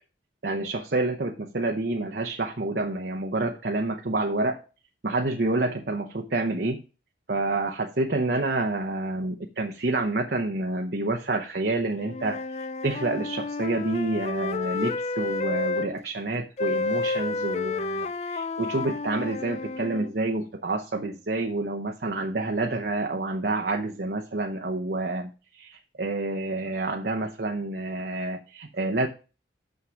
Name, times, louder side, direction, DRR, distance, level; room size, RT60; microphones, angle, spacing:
voice 1, 0.4-4.6 5.0-6.8 7.3-12.4 12.8-29.1, right 2 dB, 60° right, 3 dB, 0.8 m, -28 dB
Wind instrument woodwind instrument, 12.0-15.9 16.6-20.1, left 3 dB, 35° left, 0.4 m, -30 dB
6.5 x 5.9 x 6.2 m, 0.33 s
head